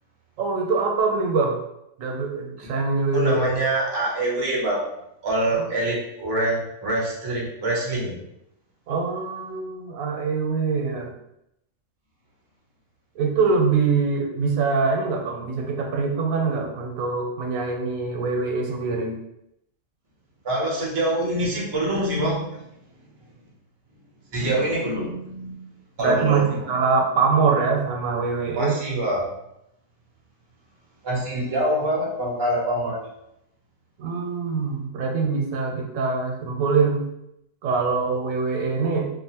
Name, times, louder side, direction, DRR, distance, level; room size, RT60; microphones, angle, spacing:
voice 1, 0.4-1.6 2.0-3.5 5.6-5.7 8.9-11.1 13.2-19.2 26.0-28.7 34.0-37.1 37.6-39.1, right 4 dB, 90° right, 2 dB, 1.0 m, -23 dB
voice 2, 3.1-4.9 5.2-8.2 20.4-22.5 24.3-25.6 26.0-26.4 28.5-29.3 31.0-33.0, right 1 dB, 30° right, -4 dB, 0.5 m, -25 dB
2.7 x 2.0 x 2.8 m, 0.81 s
omnidirectional pair, 1.4 m